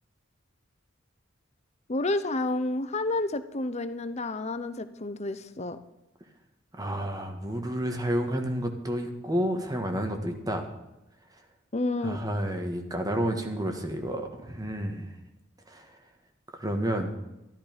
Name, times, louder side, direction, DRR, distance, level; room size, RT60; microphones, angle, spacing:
voice 1, 1.9-5.8 11.7-12.2, left 2 dB, 35° left, 11 dB, 0.8 m, -30 dB
voice 2, 6.7-10.7 12.0-15.1 15.7-16.0 16.5-17.1, equal, 20° right, 5 dB, 1.6 m, -30 dB
13.0 x 12.5 x 5.2 m, 0.95 s
head